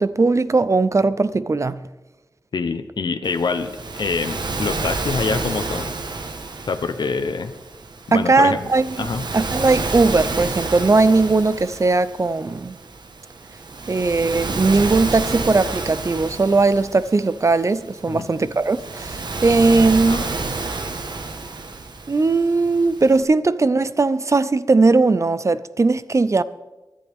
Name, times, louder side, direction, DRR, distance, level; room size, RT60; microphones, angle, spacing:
voice 1, 0.0-1.8 8.1-9.1 9.3-12.8 13.9-20.3 22.1-26.4, right 3 dB, 40° right, 0.6 m, -18 dB
voice 2, 2.5-3.7 4.0-5.9 6.7-7.5 8.1-8.6 9.0-9.2 18.1-18.3 20.0-20.3, left 4 dB, 75° left, 0.8 m, -25 dB
Waves surf, 3.2-23.2, right 3 dB, 75° right, 1.4 m, -30 dB
23.5 x 11.0 x 3.6 m
wide cardioid pair, 80°, 8 cm